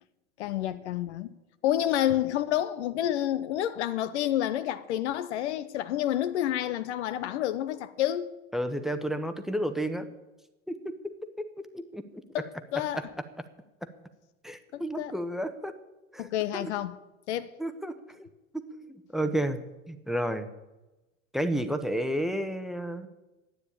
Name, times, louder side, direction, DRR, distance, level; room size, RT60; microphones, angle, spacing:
voice 1, 0.4-1.3 1.6-8.3 12.3-13.0 14.7-15.1 16.2-17.0 17.3-17.5, left 12 dB, 55° left, 0.9 m, -29 dB
voice 2, 8.5-10.1 10.7-10.9 11.7-12.2 13.0-13.1 13.8-13.9 14.4-15.7 16.1-16.3 16.5-16.7 17.6-18.3 18.5-19.6 19.9-20.5 21.3-23.1, right 1 dB, ahead, 1.1 m, -31 dB
13.0 x 9.6 x 8.8 m
figure-of-eight pair, 80°, 40 cm